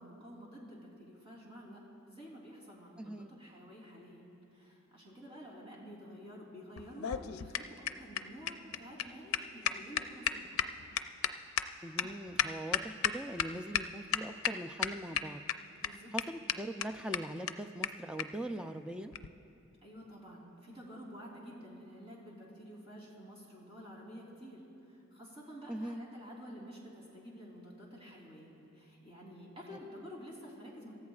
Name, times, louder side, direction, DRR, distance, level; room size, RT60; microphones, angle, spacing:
voice 1, 0.0-1.8 2.1-4.2 4.5-10.8 15.7-16.1 19.8-31.0, equal, 25° right, -4 dB, 3.3 m, -50 dB
voice 2, 3.0-3.3 11.8-15.4 16.1-19.1 25.7-26.0 29.7-29.8, right 1 dB, 5° right, 7 dB, 0.4 m, -41 dB
sound 1, 6.8-13.5 13.7-13.8 14.1-14.5 14.8-15.5 15.8-15.9 16.2-16.3 16.5-16.6 16.8-16.9 17.1-17.2 17.5-17.6 17.8-17.9 18.2-18.3 19.1-19.3, left 9 dB, 85° left, 0.5 m, -32 dB
27.0 x 14.5 x 2.4 m, 2.9 s
head